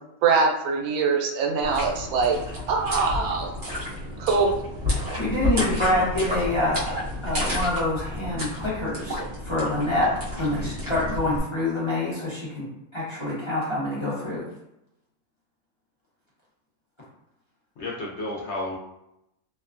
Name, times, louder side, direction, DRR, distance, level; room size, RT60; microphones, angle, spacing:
voice 1, 0.2-2.4 2.7-3.5 4.2-4.5, right 4 dB, 90° right, 1 dB, 1.1 m, -23 dB
sound 1, 1.6-11.4, left 1 dB, 40° right, 0.9 m, -31 dB
voice 2, 5.2-6.9 7.2-9.2 9.4-12.7 12.9-14.4, left 1 dB, 30° left, -8 dB, 0.6 m, -26 dB
voice 3, 17.8-18.8, left 2 dB, 65° left, -3 dB, 0.8 m, -32 dB
2.8 x 2.2 x 2.4 m, 0.84 s
omnidirectional pair, 1.5 m